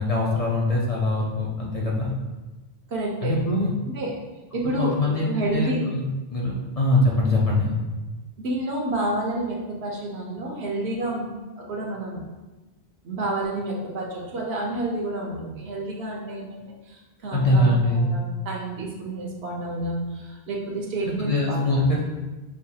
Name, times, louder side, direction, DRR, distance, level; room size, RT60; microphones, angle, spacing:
voice 1, 0.0-2.1 3.2-3.7 4.8-6.0 6.3-7.7 17.3-18.1 21.2-22.0, left 2 dB, 40° left, -4 dB, 0.6 m, -22 dB
voice 2, 2.9-3.3 3.9-4.2 4.5-5.8 8.4-12.3 13.0-21.8, right 1 dB, 75° right, -2 dB, 1.1 m, -30 dB
6.3 x 2.3 x 2.8 m, 1.2 s
omnidirectional pair, 1.1 m